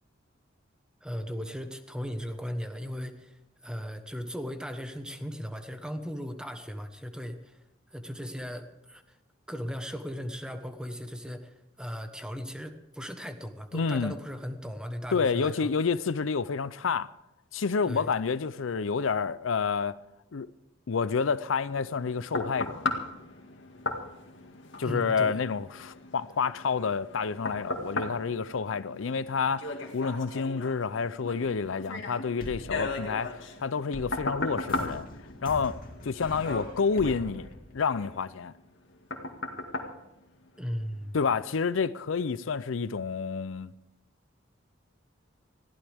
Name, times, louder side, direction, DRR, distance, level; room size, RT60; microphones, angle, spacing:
voice 1, 1.0-7.6 7.9-9.0 9.5-15.7 17.8-18.1 24.8-25.4 40.6-41.2, equal, 5° right, 1.2 m, -37 dB
voice 2, 13.7-14.2 15.1-17.1 17.5-20.0 20.3-20.5 20.9-22.8 24.8-35.1 35.4-35.8 36.0-38.5 41.1-43.7, left 5 dB, 90° left, 0.5 m, -29 dB
sound 1, 21.7-40.9 41.4-41.6, left 2 dB, 70° left, 2.1 m, -37 dB
sound 2, 32.4-38.3, left 1 dB, 50° left, 2.5 m, -43 dB
21.0 x 15.0 x 3.6 m
head